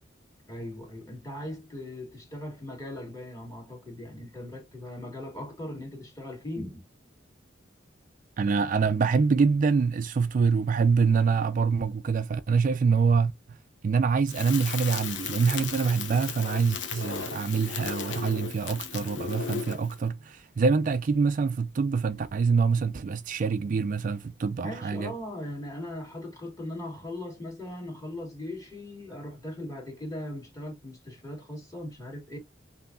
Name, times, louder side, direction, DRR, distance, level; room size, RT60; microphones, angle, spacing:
voice 1, 0.5-6.8 24.6-32.4, left 1 dB, 20° left, 1.9 m, -39 dB
voice 2, 8.4-13.3 13.8-25.1, right 5 dB, 45° right, 0.3 m, -25 dB
Crackle, 14.3-20.0, left 7 dB, 75° left, 0.9 m, -36 dB
5.4 x 2.7 x 2.5 m
head